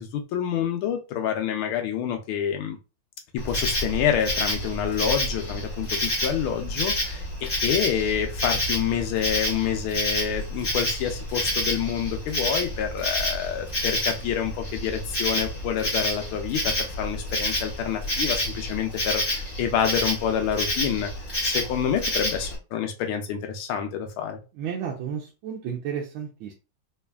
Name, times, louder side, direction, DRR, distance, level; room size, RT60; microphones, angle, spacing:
voice 1, 0.0-2.8 3.3-24.4, left 8 dB, 85° left, 4 dB, 1.5 m, -28 dB
Insect, 3.4-22.6, left 1 dB, 25° left, 1.0 m, -29 dB
voice 2, 24.6-26.5, right 8 dB, 85° right, -1 dB, 1.5 m, -32 dB
4.1 x 3.1 x 2.2 m, 0.30 s
omnidirectional pair, 2.2 m